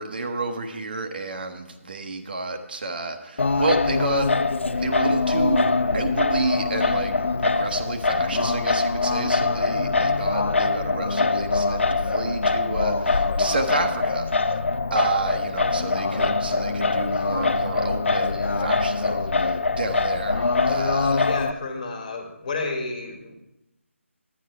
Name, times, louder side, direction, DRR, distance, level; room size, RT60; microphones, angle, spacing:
voice 1, 0.0-4.3 4.7-5.7 5.9-7.2 7.4-14.6 14.9-21.3, right 3 dB, 45° right, 6 dB, 0.9 m, -30 dB
Singing, 3.4-21.5, left 3 dB, 60° left, 0.6 m, -23 dB
voice 2, 21.2-23.4, left 3 dB, 35° left, 3 dB, 1.6 m, -31 dB
10.0 x 9.6 x 4.6 m, 0.89 s
figure-of-eight pair, 155°, 7 cm